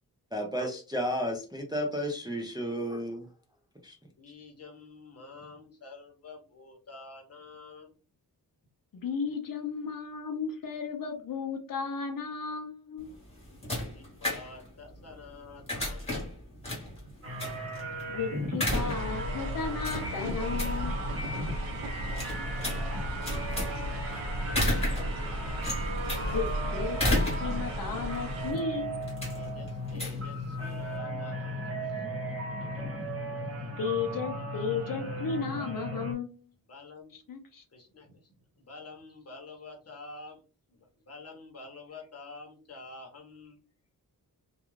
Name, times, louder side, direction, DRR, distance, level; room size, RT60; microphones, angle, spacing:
voice 1, 0.3-3.3 3.8-4.0, equal, 10° right, 1 dB, 0.4 m, -32 dB
voice 2, 4.2-7.9 13.9-17.3 21.3-24.0 29.4-32.1 36.6-37.1 37.7-40.4 40.7-43.6, left 3 dB, 40° left, 2 dB, 0.9 m, -49 dB
voice 3, 8.9-13.1 18.1-21.0 26.3-28.9 33.8-36.4 37.3-37.6, left 5 dB, 65° left, 4 dB, 0.6 m, -34 dB
sound 1, 13.0-31.0, left 1 dB, 15° left, 1.1 m, -35 dB
sound 2, 17.2-36.1, equal, 40° right, 0.8 m, -37 dB
sound 3, 18.7-28.5, right 1 dB, 70° right, 0.7 m, -35 dB
2.4 x 2.3 x 3.0 m, 0.34 s
wide cardioid pair, 175°, 37 cm